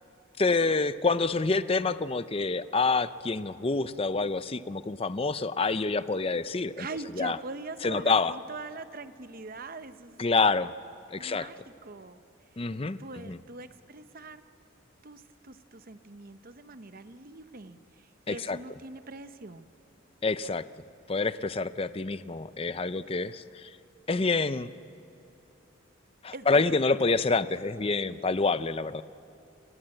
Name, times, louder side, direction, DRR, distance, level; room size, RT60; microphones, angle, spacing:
voice 1, 0.4-6.9 7.2-7.4 7.8-8.3 10.2-10.7 11.1-11.5 12.6-13.0 13.3-13.4 18.3-18.6 20.2-20.6 21.1-23.7 24.1-24.7 26.2-29.0, left 3 dB, 25° left, 14 dB, 0.6 m, -27 dB
voice 2, 6.8-10.2 11.1-12.2 13.0-14.4 15.0-19.7 26.3-26.8 28.1-28.2, right 3 dB, 45° right, 11 dB, 0.9 m, -42 dB
30.0 x 18.0 x 7.8 m, 2.9 s
head